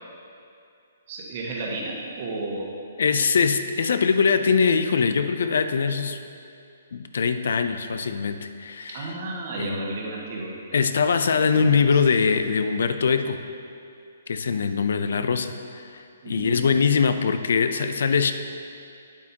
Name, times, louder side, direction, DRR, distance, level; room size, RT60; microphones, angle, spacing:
voice 1, 1.1-2.7 8.9-10.6 11.5-12.0 16.2-16.7, right 2 dB, 40° right, -3 dB, 1.5 m, -33 dB
voice 2, 3.0-6.2 6.9-9.1 9.6-9.9 10.7-13.4 14.3-15.5 15.8-18.3, left 5 dB, 70° left, 9 dB, 0.4 m, -22 dB
8.6 x 8.3 x 2.9 m, 2.5 s
hypercardioid pair, 155°, 0 cm